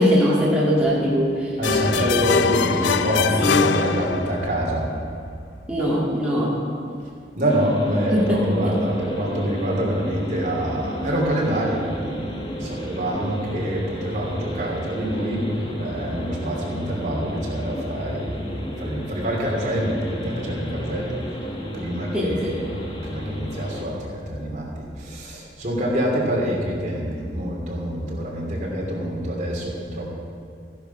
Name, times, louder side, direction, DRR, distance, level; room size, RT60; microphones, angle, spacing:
voice 1, 0.0-1.6 1.9-3.0 3.4-3.6 5.7-6.5 8.1-8.8 22.1-22.6, equal, 5° right, -6 dB, 1.9 m, -21 dB
sound 1, 1.6-4.6, left 6 dB, 75° left, 0.4 m, -23 dB
voice 2, 1.6-4.9 7.4-21.2 21.7-22.4 22.8-30.1, equal, 40° right, -3 dB, 3.0 m, -26 dB
sound 2, 7.5-23.8, equal, 30° left, 1.5 m, -32 dB
14.5 x 10.5 x 5.8 m, 2.3 s
head